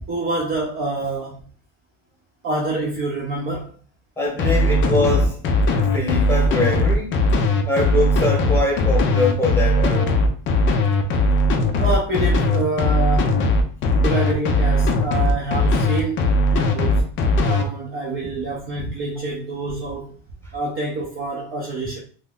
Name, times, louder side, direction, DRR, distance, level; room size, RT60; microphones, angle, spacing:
voice 1, 0.1-1.4 2.4-3.7 11.8-13.4 13.9-16.2 16.5-17.0 17.4-20.1 20.5-22.0, right 2 dB, 30° right, 0.5 m, -26 dB
voice 2, 4.2-7.2 7.7-10.2, left 1 dB, 5° left, 1.0 m, -23 dB
sound 1, 4.4-17.6, left 2 dB, 30° left, 0.4 m, -18 dB
2.6 x 2.3 x 3.5 m
cardioid pair, 140°, 44 cm